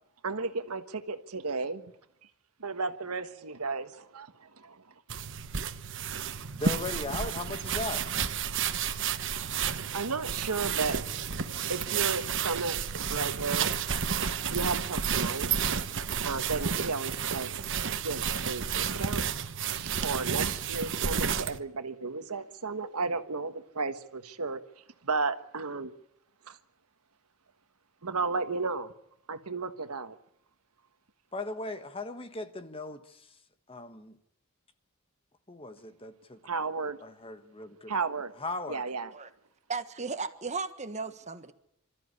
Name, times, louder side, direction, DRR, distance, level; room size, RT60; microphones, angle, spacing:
voice 1, 0.2-1.9 2.6-4.8 8.5-11.0 11.7-12.8 13.1-13.8 14.5-15.5 16.2-17.5 18.0-19.2 19.7-24.6 25.0-25.9 26.5-26.6 28.0-28.9 29.3-30.2 36.4-37.0 37.9-38.3 38.7-39.1, right 4 dB, 85° right, 10 dB, 1.4 m, -34 dB
sound 1, 5.1-21.6, right 7 dB, 55° right, 1.1 m, -31 dB
voice 2, 6.5-8.0 31.3-33.3 33.7-34.2 35.5-36.4 37.0-37.9 38.4-38.8, left 2 dB, 25° left, 9 dB, 1.4 m, -38 dB
voice 3, 39.7-41.5, right 4 dB, 30° right, 10 dB, 1.4 m, -35 dB
27.0 x 13.5 x 9.8 m, 0.76 s
head